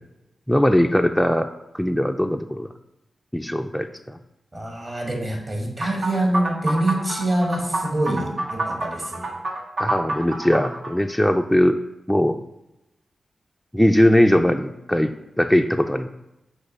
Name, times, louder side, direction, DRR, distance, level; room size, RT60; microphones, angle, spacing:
voice 1, 0.5-1.5 1.7-2.7 3.3-4.2 9.8-11.8 12.1-12.4 13.7-16.1, equal, 5° left, 4 dB, 0.3 m, -20 dB
voice 2, 4.5-9.3, right 1 dB, 35° right, 1 dB, 1.7 m, -25 dB
sound 1, 5.8-10.9, right 2 dB, 75° right, 1.0 m, -28 dB
6.0 x 3.0 x 5.3 m, 0.92 s
cardioid pair, 55°, 0 cm